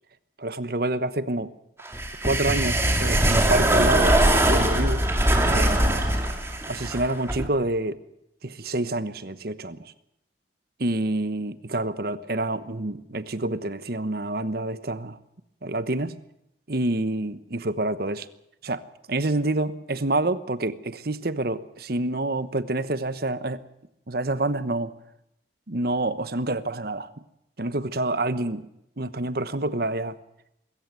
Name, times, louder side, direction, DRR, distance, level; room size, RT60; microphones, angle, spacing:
voice 1, 0.4-1.5 2.2-4.2 4.5-5.0 5.5-6.0 6.7-8.0 8.4-9.9 10.8-15.2 15.6-16.2 16.7-18.3 18.6-18.8 19.1-23.6 24.1-24.9 25.7-27.1 27.6-28.7 29.0-30.2, right 2 dB, 55° right, 13 dB, 1.1 m, -27 dB
sound 1, 1.9-7.5, right 1 dB, 15° right, 2.6 m, -21 dB
23.0 x 14.5 x 9.1 m, 0.81 s
head